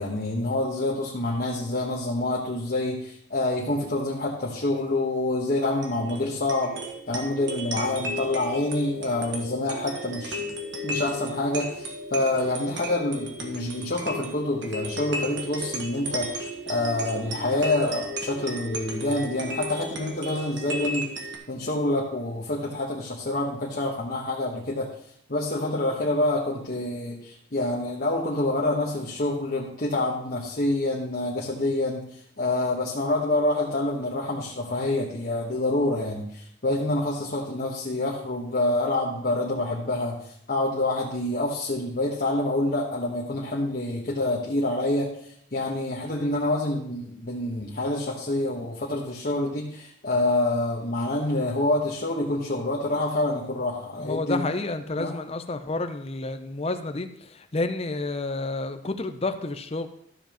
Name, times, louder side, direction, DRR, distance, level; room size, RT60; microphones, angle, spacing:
voice 1, 0.0-6.8 7.1-10.5 10.8-24.9 25.3-54.5 55.0-55.2, left 2 dB, 50° left, -4 dB, 1.2 m, -27 dB
sound 1, 5.6-21.4, equal, 75° right, 1.5 m, -34 dB
voice 2, 54.0-59.9, left 2 dB, 35° left, 9 dB, 0.6 m, -30 dB
13.0 x 7.1 x 3.0 m, 0.68 s
head